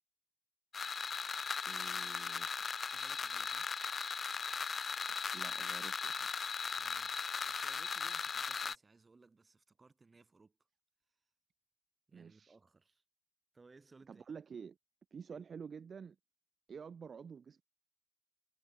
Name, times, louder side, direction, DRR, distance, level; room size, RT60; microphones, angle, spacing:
sound 1, 0.7-8.8, left 5 dB, 50° left, 0.5 m, -38 dB
voice 1, 1.7-2.5 5.3-6.4 12.1-12.6 14.1-14.8 15.1-16.2 16.7-17.6, right 6 dB, 60° right, 1.8 m, -49 dB
voice 2, 2.9-3.7 6.8-10.6 12.1-13.0 13.5-14.3 15.3-15.4, right 3 dB, 30° right, 4.1 m, -63 dB
wide cardioid pair, 110°, 0 cm